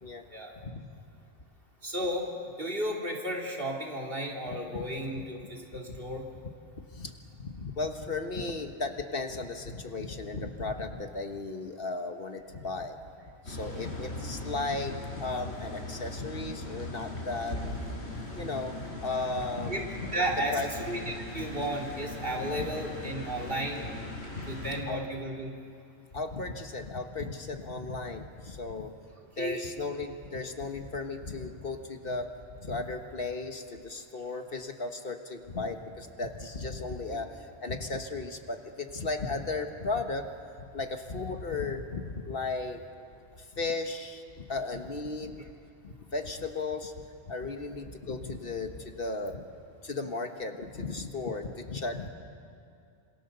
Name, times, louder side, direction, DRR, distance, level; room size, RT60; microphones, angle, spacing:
voice 1, 1.8-2.3 2.6-6.3 19.7-19.8 20.1-23.9 24.5-25.6 29.4-29.7 37.1-37.2, right 1 dB, 55° right, -1 dB, 3.5 m, -33 dB
voice 2, 7.4-13.0 13.5-17.6 18.4-19.9 20.5-20.7 22.6-22.7 24.3-25.0 26.1-28.9 29.4-32.3 32.6-40.3 40.7-42.8 43.4-45.4 45.8-49.4 49.8-52.1, left 3 dB, 55° left, 5 dB, 1.6 m, -35 dB
sound 1, 13.4-24.8, left 2 dB, 70° left, 4.9 m, -39 dB
27.0 x 26.5 x 6.8 m, 2.5 s
omnidirectional pair, 1.2 m